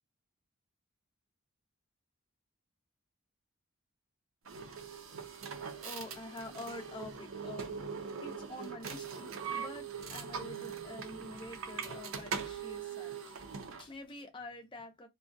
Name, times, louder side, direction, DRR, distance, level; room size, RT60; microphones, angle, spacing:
sound 1, 4.4-13.9, right 6 dB, 70° right, 0.5 m, -41 dB
voice 1, 5.4-15.1, left 2 dB, 20° left, 0.5 m, -47 dB
2.3 x 2.1 x 2.6 m
head